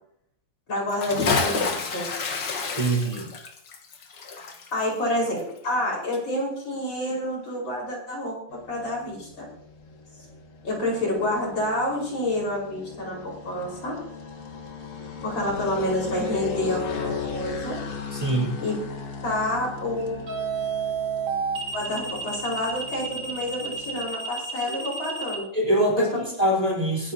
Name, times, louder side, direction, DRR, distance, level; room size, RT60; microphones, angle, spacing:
voice 1, 0.7-2.1 4.7-9.5 10.6-14.0 15.2-17.8 18.6-18.7 19.2-20.2 21.7-25.5 26.1-26.3, left 1 dB, 90° left, -3 dB, 5.7 m, -28 dB
Bathtub (filling or washing) / Splash splatter, 0.9-5.9 6.1-6.2, left 4 dB, 65° left, 2.0 m, -29 dB
voice 2, 2.7-3.3 18.1-18.6 25.5-27.1, right 1 dB, 20° right, -3 dB, 4.2 m, -23 dB
sound 1, 8.5-24.1, left 5 dB, 45° left, 1.6 m, -37 dB
sound 2, 17.0-17.3 20.3-25.4, right 5 dB, 60° right, 3.9 m, -31 dB
22.0 x 11.0 x 2.9 m, 0.68 s
omnidirectional pair, 2.1 m